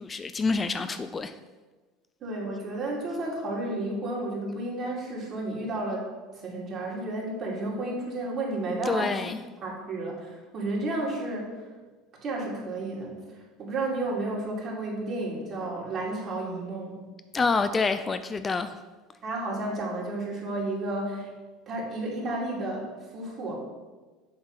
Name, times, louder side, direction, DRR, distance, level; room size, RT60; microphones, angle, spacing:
voice 1, 0.0-1.4 8.9-9.4 17.3-18.7, left 4 dB, 25° left, 0.3 m, -27 dB
voice 2, 2.2-6.1 6.3-9.1 9.6-11.7 12.2-13.2 13.6-17.0 19.2-21.3 21.7-23.6, right 2 dB, 45° right, 2.5 m, -32 dB
7.8 x 3.7 x 5.7 m
supercardioid pair, 95°, 0 cm